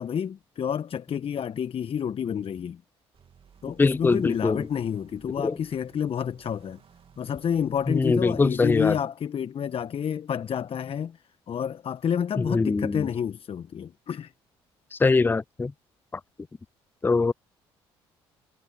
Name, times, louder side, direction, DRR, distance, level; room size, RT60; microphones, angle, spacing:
voice 1, 0.0-2.8 3.6-6.8 7.2-11.2 11.5-14.3, left 8 dB, 45° left, 1.3 m, -29 dB
sound 1, 3.1-8.7, right 7 dB, 45° right, 3.2 m, -57 dB
voice 2, 3.8-4.6 5.4-5.5 7.9-9.0 12.4-13.1 14.9-15.7 17.0-17.3, left 3 dB, 15° left, 0.4 m, -22 dB
hypercardioid pair, 50°, 13 cm